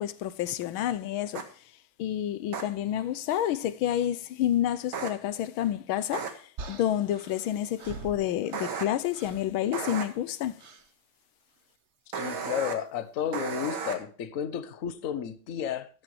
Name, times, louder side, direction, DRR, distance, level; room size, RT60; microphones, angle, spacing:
voice 1, 0.0-1.5 2.0-10.6, left 11 dB, 80° left, 1.5 m, -29 dB
sound 1, 1.3-1.4 2.5-2.6 4.9-5.1 6.1-6.3 8.5-8.8 9.7-10.0 12.1-12.7 13.3-13.9, right 6 dB, 75° right, 2.4 m, -33 dB
sound 2, 6.6-8.9 9.1-9.5 10.6-10.9 12.3-12.5, right 4 dB, 45° right, 1.0 m, -44 dB
voice 2, 12.1-15.9, left 9 dB, 50° left, 1.2 m, -32 dB
13.5 x 10.5 x 3.2 m
omnidirectional pair, 2.2 m